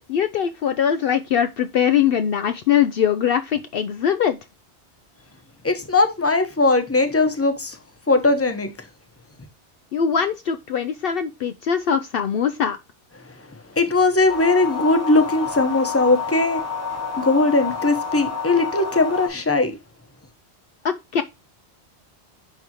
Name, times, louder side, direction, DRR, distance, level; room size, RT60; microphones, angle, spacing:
voice 1, 0.1-4.4 9.9-12.8 20.8-21.2, left 8 dB, 65° left, 0.7 m, -21 dB
voice 2, 5.6-7.8 8.1-8.7 13.7-16.6 17.2-19.7, left 2 dB, 15° left, 0.9 m, -19 dB
sound 1, 14.3-19.3, left 5 dB, 85° left, 4.1 m, -29 dB
10.0 x 3.5 x 2.9 m
omnidirectional pair, 1.1 m